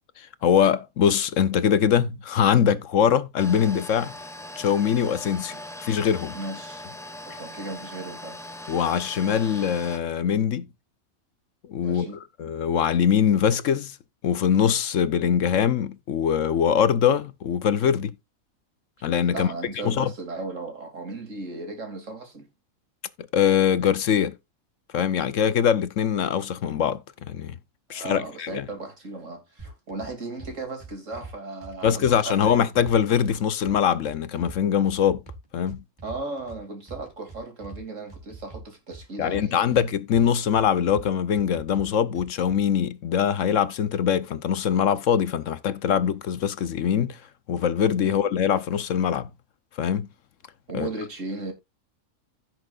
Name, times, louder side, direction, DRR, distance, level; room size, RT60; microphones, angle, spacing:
voice 1, 0.2-4.1 4.6-5.6 5.8-6.3 8.7-10.7 11.7-12.1 12.4-14.0 14.2-18.2 19.0-19.5 19.8-20.1 23.3-24.4 24.9-27.0 27.3-27.6 27.9-28.6 31.8-35.2 35.5-35.8 39.2-47.2 47.5-49.3 49.8-50.1 50.7-50.9, left 8 dB, 70° left, 1.1 m, -22 dB
sound 1, 3.4-10.0, left 1 dB, ahead, 1.2 m, -40 dB
voice 2, 6.3-6.9 7.2-8.4 11.8-12.2 19.3-22.5 27.9-32.6 36.0-39.8 48.0-48.2 50.7-51.5, right 3 dB, 60° right, 3.0 m, -36 dB
sound 2, 29.6-30.1 30.4-31.3 31.6-33.3 33.6-34.6 34.9-36.6 36.9-37.8 38.1-39.8 40.1-41.0 41.3-42.6, right 4 dB, 15° right, 4.4 m, -43 dB
16.0 x 6.1 x 2.4 m
omnidirectional pair, 1.4 m